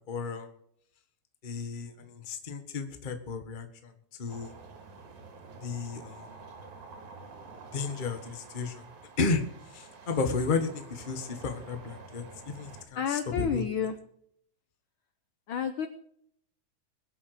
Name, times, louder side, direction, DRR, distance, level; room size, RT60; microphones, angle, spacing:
voice 1, 0.1-0.5 1.4-3.9 4.2-4.5 5.6-6.3 7.7-8.8 9.2-9.4 9.7-13.6, left 4 dB, 30° left, 6 dB, 0.9 m, -33 dB
sound 1, 4.3-12.8, right 4 dB, 85° right, 3.8 m, -49 dB
voice 2, 12.9-14.0 15.5-15.9, left 7 dB, 80° left, 9 dB, 1.1 m, -30 dB
22.5 x 8.0 x 4.9 m, 0.68 s
omnidirectional pair, 3.3 m